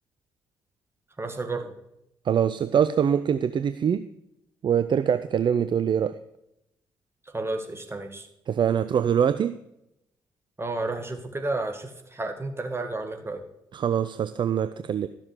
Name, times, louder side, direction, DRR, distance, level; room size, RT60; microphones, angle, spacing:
voice 1, 1.2-1.7 7.3-8.3 10.6-13.4, right 2 dB, 25° right, 6 dB, 2.1 m, -31 dB
voice 2, 2.3-4.0 4.6-6.2 8.5-9.6 13.7-15.1, right 8 dB, 45° right, 12 dB, 0.6 m, -23 dB
13.0 x 7.2 x 4.9 m, 0.81 s
figure-of-eight pair, 40°, 11 cm